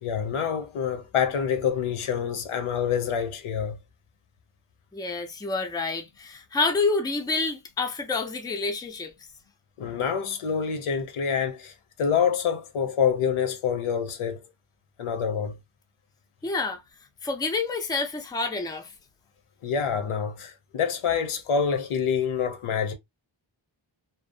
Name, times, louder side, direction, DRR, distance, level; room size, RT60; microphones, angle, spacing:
voice 1, 0.0-3.8 9.8-11.7 12.0-14.4 15.0-15.6 19.6-22.9, left 7 dB, 85° left, 0.7 m, -26 dB
voice 2, 4.9-9.1 16.4-16.8 17.2-18.9, left 3 dB, 10° left, 0.4 m, -28 dB
2.6 x 2.0 x 2.3 m
wide cardioid pair, 130°, 49 cm